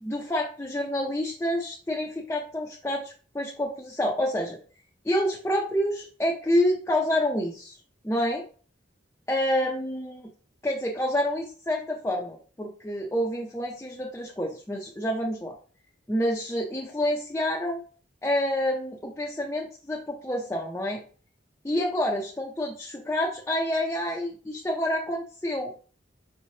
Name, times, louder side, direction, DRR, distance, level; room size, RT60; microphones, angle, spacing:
voice 1, 0.0-4.6 5.0-7.8 8.0-8.4 9.3-10.3 10.6-15.6 16.1-17.8 18.2-21.0 21.6-25.7, left 1 dB, 15° left, -1 dB, 0.5 m, -28 dB
5.2 x 3.2 x 2.7 m, 0.41 s
head